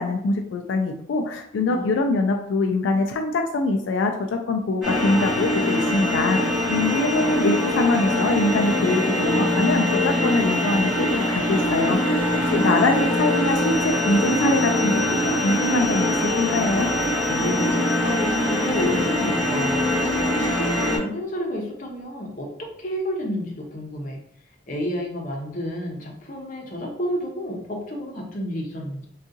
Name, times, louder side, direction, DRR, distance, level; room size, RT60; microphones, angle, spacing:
voice 1, 0.0-12.2 12.5-16.9, left 3 dB, 85° left, 3 dB, 0.3 m, -23 dB
sound 1, 4.8-21.0, left 1 dB, 5° right, 1.0 m, -23 dB
voice 2, 17.3-24.2 24.7-29.0, equal, 45° left, 0 dB, 0.7 m, -30 dB
3.6 x 2.3 x 2.6 m, 0.70 s
head